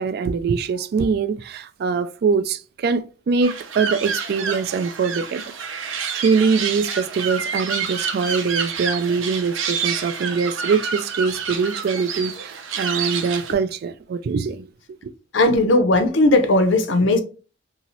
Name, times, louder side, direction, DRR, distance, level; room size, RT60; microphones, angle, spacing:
voice 1, 0.0-5.4 6.1-14.7 15.0-15.1, right 5 dB, 50° right, 0.3 m, -23 dB
sound 1, 3.4-13.5, right 6 dB, 80° right, 0.6 m, -28 dB
voice 2, 15.3-17.2, left 2 dB, 65° left, 0.6 m, -17 dB
2.8 x 2.7 x 2.9 m
head